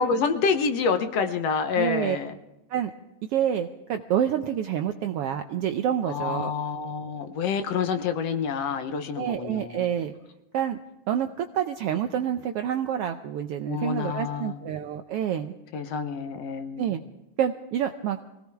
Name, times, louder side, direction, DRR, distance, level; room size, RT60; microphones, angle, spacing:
voice 1, 0.0-2.3 6.1-9.8 13.7-14.6 15.7-16.9, left 5 dB, 65° left, 7 dB, 1.9 m, -27 dB
voice 2, 1.7-2.2 2.7-2.9 3.3-6.5 9.1-10.1 10.5-10.8 11.1-15.5 16.8-17.0 17.4-18.2, right 9 dB, 75° right, 7 dB, 1.4 m, -27 dB
23.5 x 17.5 x 3.5 m, 0.95 s
omnidirectional pair, 3.3 m